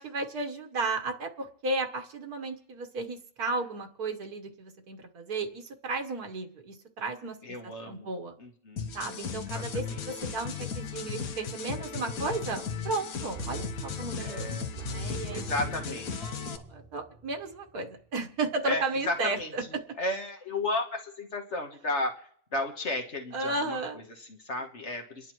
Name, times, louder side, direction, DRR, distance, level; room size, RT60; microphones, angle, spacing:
voice 1, 0.0-8.3 8.9-14.5 14.9-15.5 15.9-19.6 23.3-24.0, right 3 dB, 75° right, 4 dB, 1.7 m, -34 dB
voice 2, 7.4-8.1 8.4-9.0 9.3-10.0 14.2-14.7 15.3-16.1 18.6-22.1 22.5-25.3, left 2 dB, 50° left, 3 dB, 1.5 m, -34 dB
sound 1, 8.8-16.6, left 6 dB, 70° left, 1.4 m, -36 dB
sound 2, 13.4-18.0 18.4-18.5, right 5 dB, 35° right, 1.2 m, -44 dB
29.0 x 11.0 x 3.1 m, 0.63 s
omnidirectional pair, 1.6 m